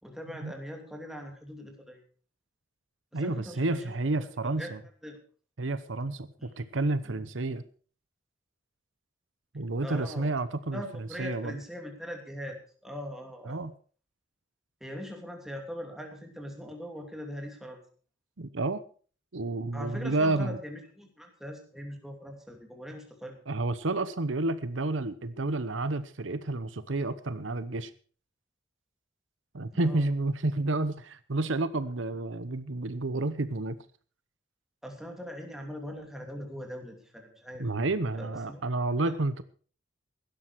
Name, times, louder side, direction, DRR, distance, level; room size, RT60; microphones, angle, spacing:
voice 1, 0.0-2.0 3.1-4.3 4.6-4.7 5.0-5.2 6.4-7.2 9.8-10.3 10.7-13.7 14.8-17.8 19.7-23.4 29.7-30.1 34.8-37.7 38.2-38.6 39.0-39.1, equal, ahead, 3 dB, 2.8 m, -41 dB
voice 2, 3.1-4.8 5.6-7.6 9.5-10.8 11.2-11.5 13.5-13.7 18.4-18.8 19.3-20.6 23.5-27.9 29.5-33.8 37.6-39.4, right 2 dB, 80° right, 14 dB, 0.9 m, -30 dB
16.0 x 12.0 x 4.7 m, 0.41 s
head